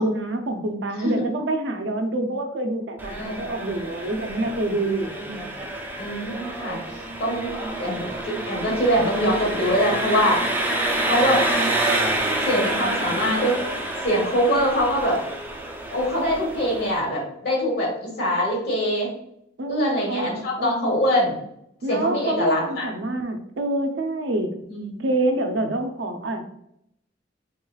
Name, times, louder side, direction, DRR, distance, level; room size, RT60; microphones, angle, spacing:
voice 1, 0.0-5.2 7.6-7.9 19.6-20.3 20.6-20.9 21.8-24.5 25.0-26.4, right 1 dB, 70° right, 5 dB, 0.5 m, -26 dB
Engine, 3.0-17.0, right 1 dB, 10° right, 0.4 m, -28 dB
voice 2, 3.1-3.6 5.2-5.4 6.0-6.8 7.2-7.5 7.8-10.4 11.0-11.4 12.4-13.6 14.0-15.2 15.9-19.1 19.7-21.4 21.9-22.9 24.7-25.0, equal, 55° left, -1 dB, 1.2 m, -23 dB
3.5 x 3.1 x 2.3 m, 0.74 s
head